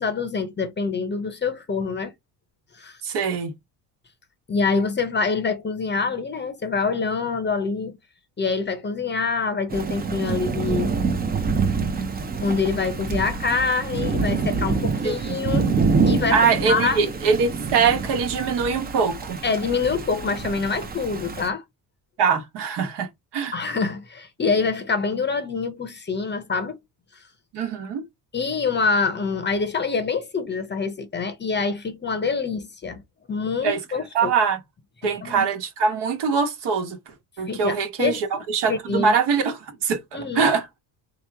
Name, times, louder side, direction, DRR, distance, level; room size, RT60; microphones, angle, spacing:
voice 1, 0.0-2.1 2.7-3.0 4.5-8.0 8.4-10.9 12.4-15.7 16.1-17.0 19.4-21.6 23.5-26.8 28.3-33.0 33.3-34.3 35.0-35.5 37.5-38.2 38.7-39.1 40.1-40.5, left 4 dB, 25° left, 0.7 m, -25 dB
voice 2, 3.0-3.5 15.0-15.2 16.3-19.4 22.2-23.6 27.5-28.0 33.6-34.6 35.0-37.0 37.4-40.0 40.3-40.7, right 5 dB, 65° right, 1.3 m, -23 dB
Thunder / Rain, 9.7-21.5, right 4 dB, 20° right, 0.5 m, -26 dB
3.6 x 2.9 x 3.4 m
cardioid pair, 110°, 44 cm